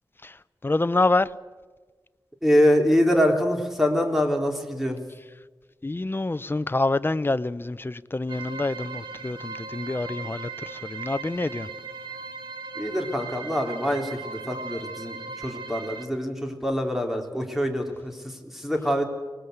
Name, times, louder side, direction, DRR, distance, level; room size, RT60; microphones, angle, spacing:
voice 1, 0.2-1.3 5.8-11.7, left 2 dB, 25° left, 0.7 m, -27 dB
voice 2, 2.4-5.0 12.8-19.0, equal, 5° right, 3.5 m, -24 dB
sound 1, 8.3-16.1, right 4 dB, 85° right, 1.8 m, -38 dB
25.0 x 19.5 x 8.1 m
wide cardioid pair, 90°, 8 cm